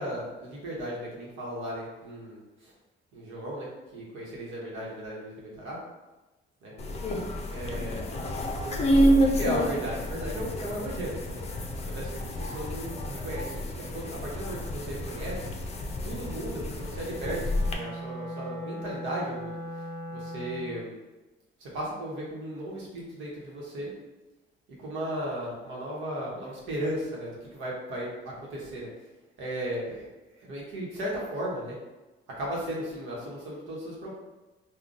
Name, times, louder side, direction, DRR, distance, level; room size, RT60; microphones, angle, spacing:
voice 1, 0.0-2.7 3.1-5.8 6.6-6.7 7.5-8.1 8.6-11.4 11.9-15.5 16.0-19.5 20.1-20.9 21.6-23.9 24.8-28.9 29.4-30.1 30.4-31.8 32.4-34.1, right 1 dB, 90° right, -4 dB, 1.0 m, -36 dB
sound 1, 6.8-17.7, equal, 30° left, 0.5 m, -29 dB
Wind instrument woodwind instrument, 17.5-20.9, equal, 50° right, 0.6 m, -38 dB
3.7 x 2.2 x 2.4 m, 1.1 s
cardioid pair, 90°, 20 cm